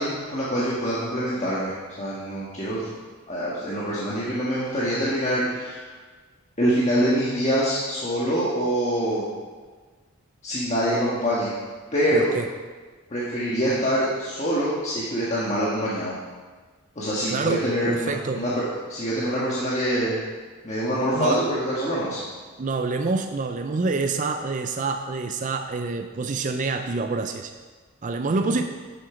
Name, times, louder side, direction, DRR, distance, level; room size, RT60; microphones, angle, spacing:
voice 1, 0.0-2.9 3.3-5.9 6.6-9.3 10.4-11.5 11.9-12.3 13.1-16.2 16.9-18.6 18.9-20.2 20.6-22.2 28.4-28.6, equal, 30° left, -8 dB, 1.5 m, -25 dB
voice 2, 12.1-12.5 17.3-18.5 21.1-21.4 22.6-27.5 28.0-28.6, right 3 dB, 35° right, 6 dB, 0.4 m, -27 dB
9.6 x 7.7 x 5.0 m, 1.4 s
head